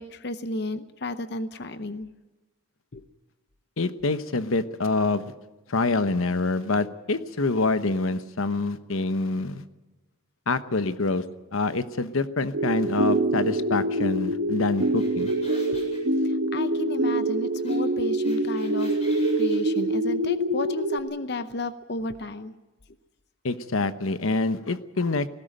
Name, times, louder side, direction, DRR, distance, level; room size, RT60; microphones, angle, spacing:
voice 1, 0.0-2.1 2.9-3.1 16.2-18.9 19.4-22.5, left 2 dB, 55° left, 11 dB, 0.8 m, -33 dB
voice 2, 3.8-5.3 5.7-9.6 10.5-11.2 11.5-15.3 23.4-25.3, left 3 dB, 85° left, 12 dB, 1.0 m, -26 dB
sound 1, 12.5-21.0, right 1 dB, 60° right, 1.3 m, -25 dB
sound 2, 14.6-16.0 17.6-17.8 18.0-19.8, left 1 dB, 30° left, 7.6 m, -47 dB
19.0 x 17.0 x 9.1 m, 1.1 s
head